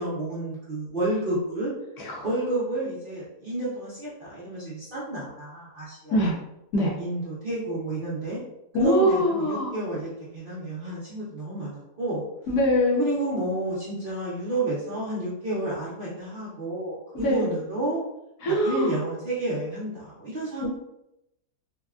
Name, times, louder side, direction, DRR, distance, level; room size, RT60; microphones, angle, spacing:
voice 1, 0.0-1.7 2.2-6.3 6.8-8.4 8.8-12.2 13.0-18.0 18.5-20.7, right 1 dB, 45° right, -8 dB, 0.8 m, -30 dB
voice 2, 8.7-9.8 12.5-13.1 17.1-17.5 18.4-19.0 20.6-20.7, equal, 70° left, -4 dB, 1.3 m, -23 dB
3.8 x 2.2 x 2.4 m, 0.86 s
omnidirectional pair, 1.7 m